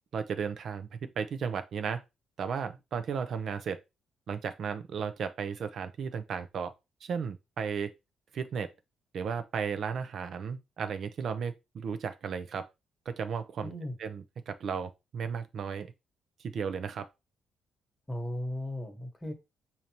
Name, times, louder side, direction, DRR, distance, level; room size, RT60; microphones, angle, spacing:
voice 1, 0.1-2.0 2.4-3.8 4.3-6.7 7.0-7.9 8.3-8.7 9.1-12.7 13.1-13.7 14.0-15.9 16.4-17.1, right 6 dB, 60° right, 0.6 m, -34 dB
voice 2, 13.6-13.9 18.1-19.3, left 1 dB, 20° left, 1.2 m, -36 dB
5.1 x 2.8 x 2.9 m
cardioid pair, 90°, 0 cm